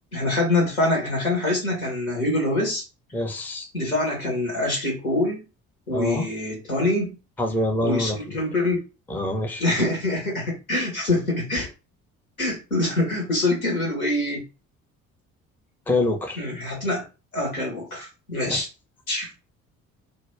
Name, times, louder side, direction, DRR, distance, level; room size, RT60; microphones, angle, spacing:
voice 1, 0.1-2.8 3.7-5.4 5.9-7.2 7.8-8.8 9.6-11.7 12.4-14.4 16.4-17.0 17.3-18.7 19.1-19.3, left 2 dB, 85° left, 0.9 m, -25 dB
voice 2, 3.1-3.7 5.9-6.3 7.4-8.4 9.1-9.6 15.9-16.4 18.4-18.6, left 1 dB, 5° left, 0.4 m, -26 dB
2.2 x 2.0 x 3.2 m
figure-of-eight pair, 50°, 42 cm